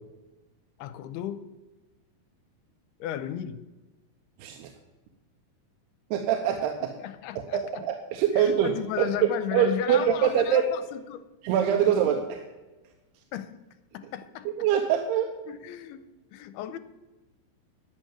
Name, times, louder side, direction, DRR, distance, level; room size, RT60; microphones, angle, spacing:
voice 1, 0.8-1.5 3.0-3.7 7.0-7.6 8.3-11.2 11.8-11.9 13.3-13.6 13.9-14.7 15.5-16.0 16.3-16.8, left 11 dB, 90° left, 12 dB, 2.6 m, -34 dB
voice 2, 4.4-4.7 6.1-6.9 7.5-9.1 9.5-10.7 11.4-12.4 14.6-15.3, right 9 dB, 85° right, 4 dB, 2.9 m, -24 dB
11.0 x 6.5 x 9.0 m, 1.1 s
omnidirectional pair, 4.5 m